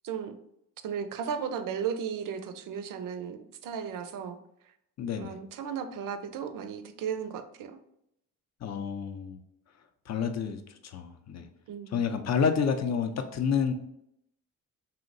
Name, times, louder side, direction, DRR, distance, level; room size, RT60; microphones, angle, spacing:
voice 1, 0.0-0.4 0.8-4.4 5.2-7.8 11.7-12.0, right 7 dB, 65° right, 9 dB, 0.5 m, -35 dB
voice 2, 5.0-5.4 8.6-9.4 10.1-11.5 11.9-13.7, left 6 dB, 50° left, 7 dB, 0.5 m, -29 dB
2.8 x 2.1 x 3.8 m, 0.76 s
supercardioid pair, 65°, 36 cm